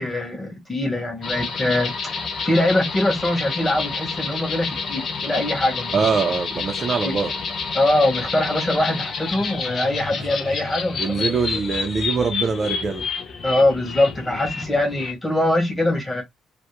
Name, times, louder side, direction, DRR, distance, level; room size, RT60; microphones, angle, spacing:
voice 1, 0.0-6.0 7.0-7.1 7.7-11.3 13.4-16.2, left 1 dB, 10° left, 0.7 m, -22 dB
sound 1, 1.2-15.1, left 5 dB, 40° left, 0.4 m, -29 dB
voice 2, 5.9-7.3 11.0-13.0, right 5 dB, 25° right, 0.4 m, -23 dB
2.2 x 2.0 x 2.8 m
cardioid pair, 175°, 0 cm